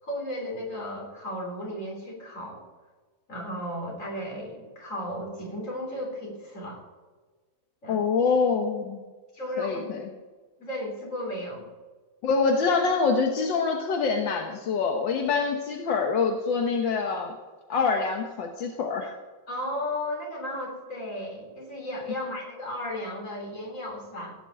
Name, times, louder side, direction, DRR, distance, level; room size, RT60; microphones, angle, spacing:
voice 1, 0.0-2.6 3.3-6.8 7.8-8.1 9.3-9.9 10.6-11.6 19.5-24.4, left 1 dB, 40° left, -1 dB, 3.9 m, -34 dB
voice 2, 7.9-9.0 9.6-10.0 12.2-17.4 17.7-19.1, left 5 dB, 80° left, 3 dB, 1.8 m, -25 dB
16.5 x 6.1 x 8.1 m, 1.3 s
omnidirectional pair, 2.0 m